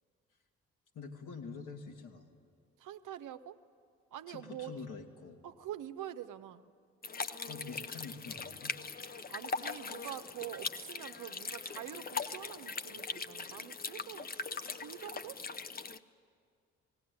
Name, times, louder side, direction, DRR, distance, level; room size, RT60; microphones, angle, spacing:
voice 1, 0.9-2.3 4.3-5.4 7.4-8.8, left 4 dB, 65° left, 2 dB, 2.1 m, -46 dB
voice 2, 2.8-3.6 4.1-4.7 5.4-6.6 9.3-15.4, right 11 dB, 65° right, 10 dB, 0.8 m, -45 dB
sound 1, 7.0-16.0, left 4 dB, 25° left, 0.8 m, -41 dB
18.0 x 17.0 x 9.6 m, 2.3 s
hypercardioid pair, 45°, 34 cm